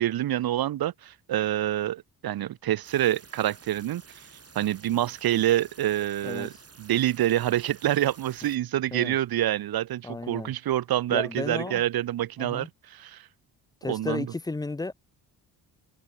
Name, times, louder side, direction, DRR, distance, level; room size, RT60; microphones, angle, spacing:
voice 1, 0.0-4.0 4.5-13.3 13.9-14.3, right 13 dB, 60° right, 0.8 m, -27 dB
sound 1, 2.8-8.6, right 5 dB, 35° right, 5.8 m, -52 dB
voice 2, 10.0-10.5 11.1-11.8 12.4-12.7 13.8-14.9, left 2 dB, 10° left, 0.4 m, -33 dB
cardioid pair, 90°, 42 cm